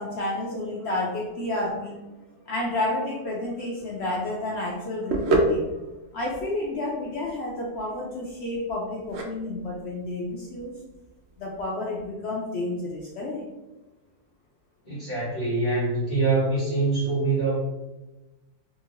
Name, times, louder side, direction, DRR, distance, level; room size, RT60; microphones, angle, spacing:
voice 1, 0.0-2.0 2.5-5.7 6.1-10.7 11.4-13.4, left 2 dB, 70° left, -3 dB, 0.6 m, -30 dB
sound 1, 3.8-11.7, right 1 dB, 75° right, 0.6 m, -30 dB
voice 2, 14.8-17.6, right 3 dB, 40° left, -12 dB, 1.3 m, -24 dB
2.8 x 2.6 x 2.7 m, 1.1 s
omnidirectional pair, 1.6 m